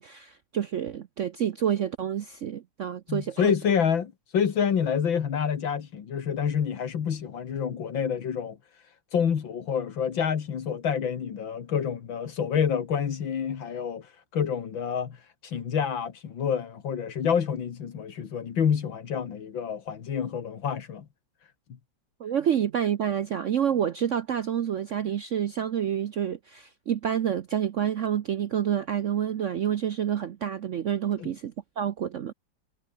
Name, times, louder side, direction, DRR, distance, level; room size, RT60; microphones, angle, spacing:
voice 1, 0.0-3.5 22.2-32.3, right 9 dB, 65° right, 0.7 m, -28 dB
voice 2, 3.1-8.6 9.1-21.1 31.2-31.3, left 7 dB, 75° left, 2.5 m, -28 dB
omnidirectional pair, 2.1 m